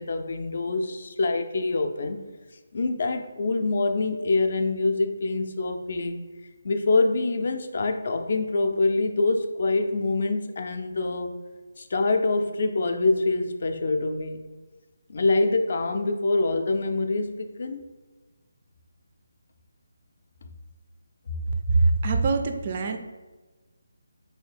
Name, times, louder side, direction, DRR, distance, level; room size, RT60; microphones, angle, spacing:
voice 1, 0.0-2.2 2.7-6.1 6.6-11.4 11.8-14.4 15.1-17.8, left 3 dB, 50° left, 6 dB, 0.4 m, -25 dB
voice 2, 21.7-23.0, right 3 dB, 35° right, 5 dB, 0.3 m, -23 dB
3.8 x 2.7 x 3.3 m, 1.2 s
figure-of-eight pair, 150°, 0 cm